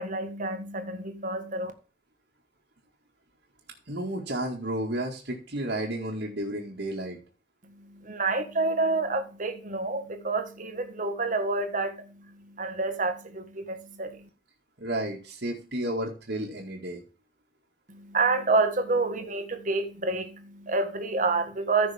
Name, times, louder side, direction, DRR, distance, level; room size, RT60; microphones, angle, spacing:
voice 1, 0.0-1.7 7.8-14.3 17.9-21.9, right 3 dB, 45° right, 1.6 m, -28 dB
voice 2, 3.9-7.2 14.8-17.0, right 1 dB, 70° right, 2.1 m, -32 dB
14.5 x 6.1 x 3.6 m
head